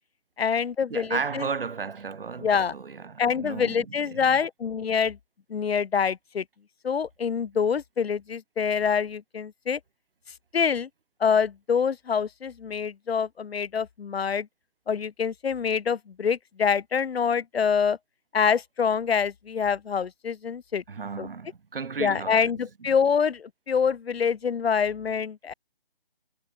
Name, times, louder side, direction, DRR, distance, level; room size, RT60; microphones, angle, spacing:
voice 1, 0.4-1.5 2.4-2.7 3.2-5.2 5.5-6.4 6.8-9.8 10.5-10.9 11.2-14.5 14.9-18.0 18.3-20.8 21.2-21.3 22.0-25.5, left 6 dB, 85° left, 0.7 m, -26 dB
voice 2, 0.9-4.3 20.9-22.5, right 5 dB, 65° right, 1.4 m, -34 dB
figure-of-eight pair, 170°, 30 cm